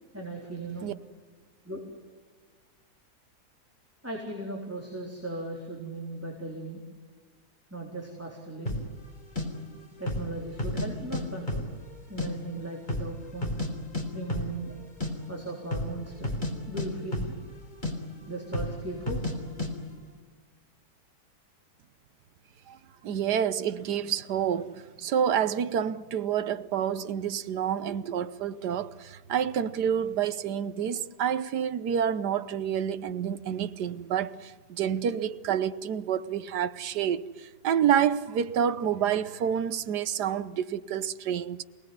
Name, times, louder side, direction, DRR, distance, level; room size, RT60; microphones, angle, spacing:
voice 1, 0.1-0.9 1.6-1.8 4.0-6.8 7.7-8.8 10.0-11.7 12.1-13.6 14.1-14.7 15.3-16.4 16.7-17.4 18.3-19.2, right 2 dB, 10° right, 4.1 m, -37 dB
sound 1, 8.7-8.9 9.4-9.5 10.0-10.3 10.6-11.2 11.5-12.3 12.5-12.6 12.9-13.7 13.9-14.0 14.3-14.5 14.8-15.1 15.6-15.9 16.2-16.5 16.8-17.6 17.8-17.9 18.5-18.8 19.1-19.3 19.6-19.7, left 1 dB, 25° left, 4.3 m, -31 dB
voice 2, 23.0-41.6, right 8 dB, 75° right, 1.5 m, -28 dB
27.5 x 19.0 x 9.6 m
omnidirectional pair, 1.8 m